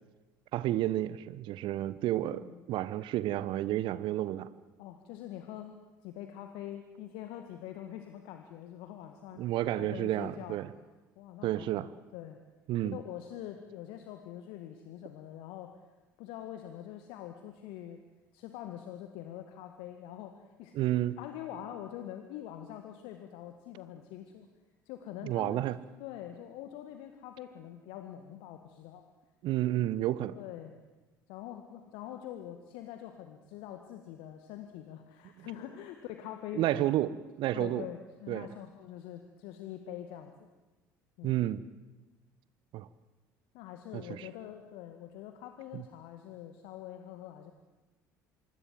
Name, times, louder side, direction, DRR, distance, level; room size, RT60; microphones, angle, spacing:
voice 1, 0.5-4.5 9.4-10.7 11.4-11.9 12.7-13.0 20.7-21.2 25.2-25.8 29.4-30.3 35.4-35.5 36.5-37.1 37.4-37.8 38.3-38.5 41.2-41.6 42.7-42.9 43.9-44.3 45.7-45.8, right 14 dB, 50° right, 17 dB, 1.2 m, -31 dB
voice 2, 2.3-2.6 4.8-5.8 6.0-10.6 11.2-12.4 12.8-15.7 16.2-18.0 18.3-20.8 21.2-24.5 24.9-25.6 26.0-29.1 30.3-30.8 31.3-37.0 37.5-40.3 41.2-41.4 43.5-47.5, left 11 dB, 60° left, 7 dB, 1.9 m, -44 dB
26.0 x 24.5 x 7.7 m, 1.2 s
figure-of-eight pair, 60°, 10 cm